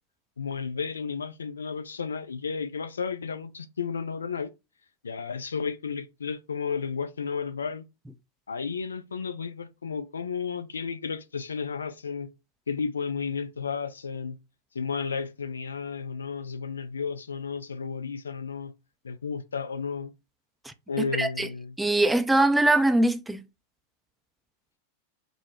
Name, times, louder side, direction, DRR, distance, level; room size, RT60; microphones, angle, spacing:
voice 1, 0.4-4.5 5.0-7.9 8.5-12.3 12.7-14.4 14.7-18.7 19.0-20.1 20.9-21.8, left 5 dB, 70° left, 0.5 m, -33 dB
voice 2, 21.2-21.5 21.8-23.4, right 2 dB, 5° right, 0.4 m, -22 dB
5.4 x 2.1 x 2.8 m
figure-of-eight pair, 90°, 0 cm